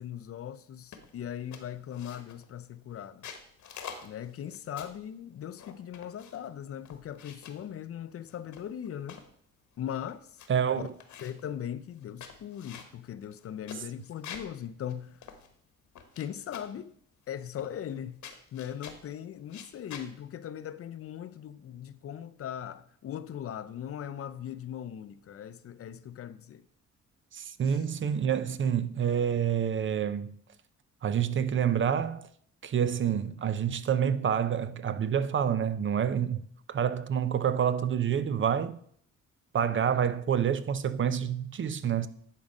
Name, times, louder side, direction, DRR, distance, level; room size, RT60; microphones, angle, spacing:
voice 1, 0.0-3.3 4.0-9.2 9.8-10.4 10.8-10.9 11.2-15.3 16.2-17.0 17.3-18.2 18.5-26.7 27.7-27.8, left 9 dB, 50° left, 0.5 m, -39 dB
sound 1, 0.9-1.2 1.5-2.5 3.0-5.1 5.6-6.5 6.8-7.6 8.3-9.3 9.8-9.9 10.1-10.5 10.8-11.5 12.0-14.6 14.9-15.0 15.2-16.2 16.5-16.8 17.6-18.0 18.2-19.1 19.5-20.1, left 7 dB, 70° left, 1.2 m, -47 dB
voice 2, 10.5-10.9 27.3-30.3 31.0-32.3 32.6-36.4 36.7-38.8 39.5-42.1, right 8 dB, 40° right, 0.6 m, -28 dB
10.5 x 3.9 x 5.3 m
cardioid pair, 90°, 30 cm